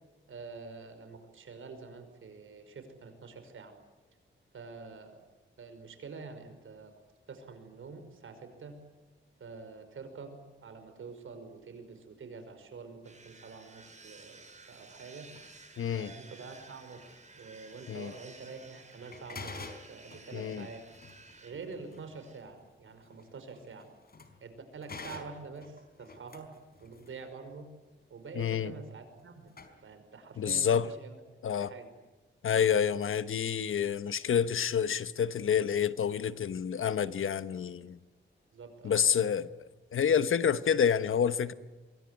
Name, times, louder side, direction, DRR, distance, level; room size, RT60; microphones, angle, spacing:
voice 1, 0.3-3.7 4.5-5.2 5.6-6.9 7.3-8.8 9.4-15.3 15.9-20.8 21.4-23.9 24.4-26.5 26.8-27.7 28.1-29.5 29.8-31.2 31.6-31.9 38.5-39.0, right 4 dB, 80° right, 5.5 m, -47 dB
sound 1, 13.0-22.4, right 3 dB, 35° right, 5.3 m, -54 dB
sound 2, 15.3-15.5 16.6-16.8 17.4-17.5 18.1-18.3 18.7-18.8 19.0-24.5 24.8-27.3 29.2-29.3 29.5-29.7, left 3 dB, 50° left, 4.6 m, -48 dB
voice 2, 15.8-16.1 17.9-18.1 20.3-20.7 28.4-28.7 30.4-30.9 31.4-31.7 32.4-38.0 38.8-39.5 39.9-41.5, left 8 dB, 80° left, 1.2 m, -28 dB
25.5 x 23.0 x 9.9 m
cardioid pair, 85°, 21 cm